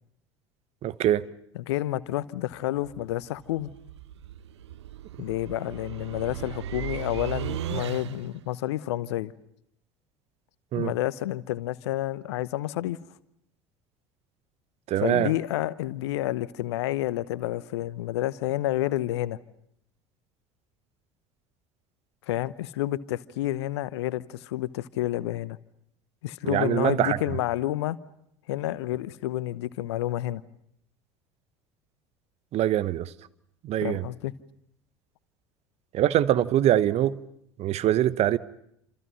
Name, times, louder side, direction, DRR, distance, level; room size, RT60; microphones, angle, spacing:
voice 1, 0.8-1.2 10.7-10.9 14.9-15.3 26.4-27.2 32.5-33.1 33.6-34.0 35.9-37.2 37.6-38.4, right 12 dB, 45° right, 1.0 m, -23 dB
voice 2, 1.5-3.7 5.2-9.3 10.7-13.0 15.0-19.4 22.3-25.6 26.2-28.0 28.5-30.4 33.8-34.3, left 15 dB, 70° left, 0.9 m, -29 dB
sound 1, 2.8-8.4, right 11 dB, 75° right, 0.9 m, -37 dB
29.0 x 27.5 x 5.6 m
figure-of-eight pair, 65°, 15 cm